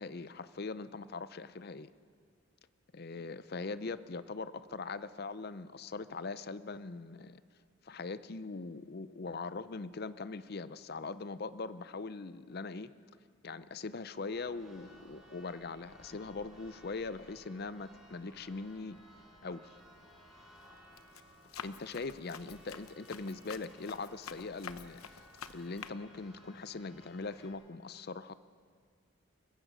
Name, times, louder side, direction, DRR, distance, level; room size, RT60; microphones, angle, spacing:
voice 1, 0.0-1.9 2.9-7.4 7.8-12.9 13.4-19.0 19.4-19.8 21.6-28.3, left 3 dB, 45° left, 14 dB, 0.5 m, -41 dB
Church bell, 14.3-27.5, equal, ahead, 4.9 m, -59 dB
Run, 19.8-20.1 20.6-25.9, left 6 dB, 85° left, 0.9 m, -48 dB
29.5 x 15.5 x 6.2 m, 2.1 s
head